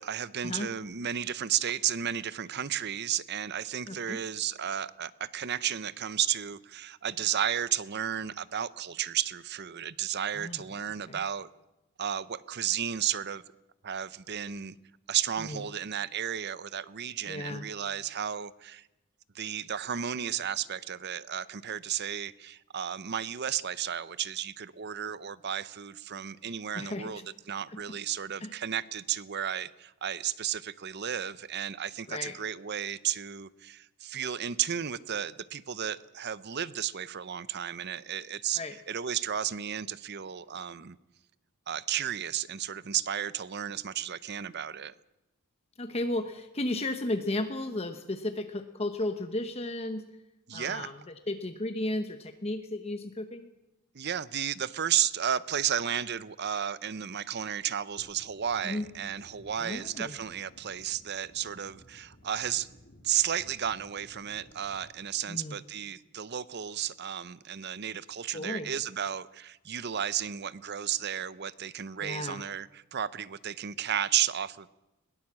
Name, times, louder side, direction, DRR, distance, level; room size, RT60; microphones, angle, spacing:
voice 1, 0.0-11.5 12.0-13.4 13.8-14.7 15.1-18.8 19.3-38.6 38.9-41.0 41.7-44.9 50.5-50.9 53.9-62.7 63.0-74.7, right 9 dB, 50° right, 17 dB, 0.6 m, -33 dB
voice 2, 3.9-4.2 10.3-10.6 11.1-11.2 15.4-15.6 17.3-17.6 26.7-27.1 27.7-27.8 28.4-28.5 32.1-32.4 38.5-38.8 45.8-50.1 50.5-53.5 58.6-58.8 59.6-60.1 65.3-65.6 68.3-68.7 72.0-72.4, left 1 dB, 30° left, 8 dB, 1.0 m, -34 dB
sound 1, 58.0-64.9, equal, 45° left, 3.1 m, -57 dB
21.5 x 17.5 x 7.5 m, 0.94 s
head